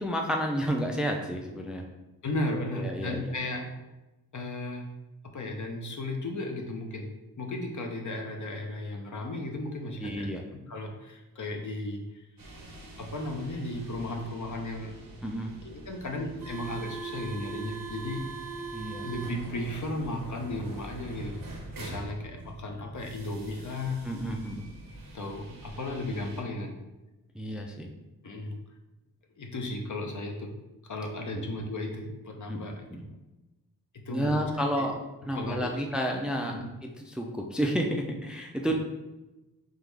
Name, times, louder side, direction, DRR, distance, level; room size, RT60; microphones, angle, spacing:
voice 1, 0.0-1.8 2.5-3.3 10.0-10.4 15.2-15.5 18.7-19.1 24.0-24.7 27.3-27.9 31.3-31.4 32.5-33.0 34.1-34.9 35.3-38.7, equal, ahead, 2 dB, 0.5 m, -31 dB
voice 2, 2.2-3.7 4.3-4.9 5.3-7.1 7.4-10.3 10.7-12.3 13.0-14.9 15.6-18.2 19.0-21.4 21.8-24.0 25.1-26.8 28.2-28.6 29.4-30.5 30.8-32.8 34.1-34.4 34.8-34.9 35.3-35.8, left 1 dB, 50° left, 2 dB, 0.8 m, -35 dB
sound 1, 12.4-26.4, right 3 dB, 60° right, 1.0 m, -43 dB
3.7 x 3.0 x 3.4 m, 1.0 s
cardioid pair, 60°, 38 cm